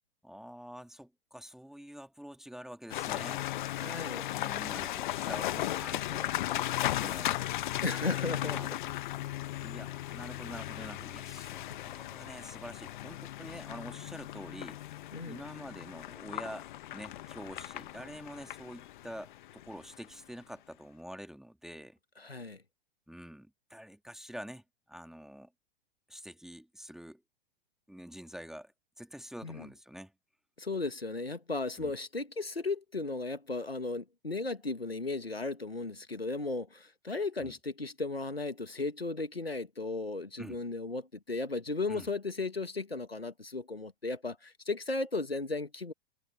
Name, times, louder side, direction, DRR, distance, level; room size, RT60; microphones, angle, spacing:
voice 1, 0.2-3.4 4.0-6.4 6.7-7.4 8.4-8.7 9.6-14.8 15.3-22.0 23.1-25.5 26.1-27.2 27.9-28.7 29.0-30.1 31.8-31.9 37.4-37.5 40.4-40.6 41.9-42.1, equal, ahead, 2.3 m, -46 dB
sound 1, 2.9-20.1, left 14 dB, 55° left, 1.3 m, -36 dB
voice 2, 3.8-4.3 7.8-8.8 11.7-11.8 15.1-15.4 22.2-22.6 29.4-29.7 30.6-45.9, left 3 dB, 90° left, 1.8 m, -35 dB
figure-of-eight pair, 100°, 29 cm